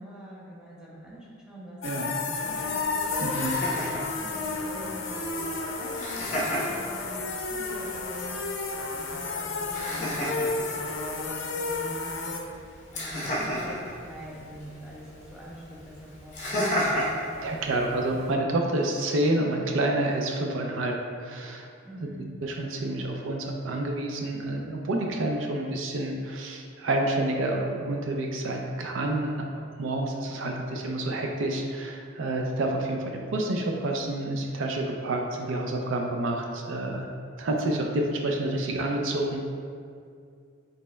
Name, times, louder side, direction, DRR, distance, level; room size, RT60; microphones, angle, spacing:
voice 1, 0.0-3.2 3.7-12.3 12.9-17.0 21.8-22.3, equal, 5° right, -7 dB, 0.7 m, -45 dB
sound 1, 1.8-12.4, left 3 dB, 70° left, 0.5 m, -31 dB
Laughter, 2.3-18.3, equal, 35° left, 0.9 m, -35 dB
voice 2, 3.2-3.6 17.4-21.7 22.4-37.1 37.4-39.4, right 1 dB, 70° right, 1 dB, 0.4 m, -28 dB
5.2 x 4.0 x 2.2 m, 2.3 s
head